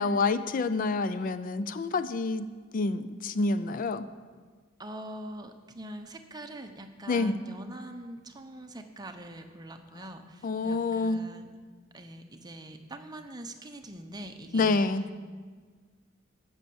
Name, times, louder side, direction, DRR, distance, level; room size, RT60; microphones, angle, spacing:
voice 1, 0.0-2.5 2.7-4.1 7.1-7.4 10.4-11.2 14.5-15.0, left 3 dB, 45° left, 13 dB, 0.4 m, -27 dB
voice 2, 4.8-11.6 11.9-14.9, right 1 dB, 20° right, 6 dB, 0.8 m, -43 dB
12.5 x 6.3 x 7.7 m, 1.5 s
head